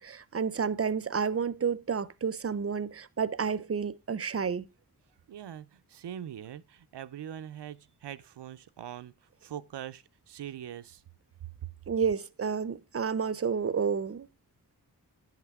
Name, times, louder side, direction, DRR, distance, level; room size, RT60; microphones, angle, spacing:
voice 1, 0.0-4.7 11.9-14.3, right 6 dB, 35° right, 0.6 m, -30 dB
voice 2, 5.3-9.1 9.4-11.0, right 10 dB, 85° right, 0.6 m, -42 dB
10.5 x 8.0 x 3.5 m
cardioid pair, 55°, 40 cm